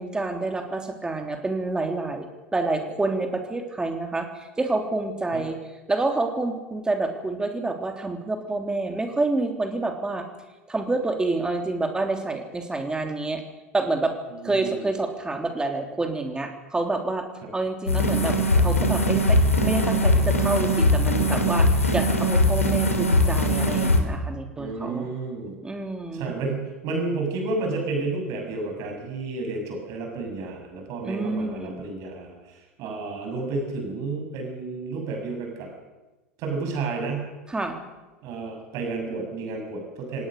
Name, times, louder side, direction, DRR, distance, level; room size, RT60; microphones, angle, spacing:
voice 1, 0.0-2.3 2.5-5.6 5.9-10.2 10.7-13.4 13.7-14.1 14.4-17.3 17.5-25.1 25.6-26.3 31.0-31.9 37.5-37.8, right 2 dB, 10° right, 4 dB, 3.5 m, -28 dB
voice 2, 14.3-14.8 24.6-25.6 26.1-35.7 36.4-37.3 38.2-40.3, right 3 dB, 45° right, 3 dB, 6.9 m, -31 dB
sound 1, 17.9-24.0, left 1 dB, 85° left, 2.9 m, -21 dB
27.0 x 18.0 x 6.7 m, 1.1 s
figure-of-eight pair, 80°, 7 cm